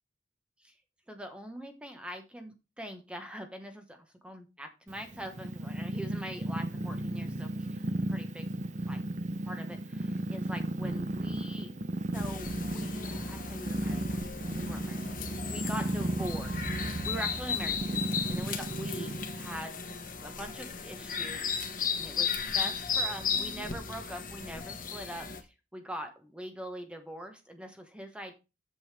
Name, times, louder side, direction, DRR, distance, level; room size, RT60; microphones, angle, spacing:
voice 1, 1.1-8.5 8.9-9.0 9.4-11.7 12.1-28.3, equal, 5° right, 6 dB, 1.3 m, -43 dB
Purr, 4.9-19.7, right 1 dB, 40° right, 0.7 m, -35 dB
sound 1, 12.1-25.4, left 5 dB, 45° left, 1.4 m, -35 dB
7.9 x 7.9 x 3.4 m, 0.28 s
head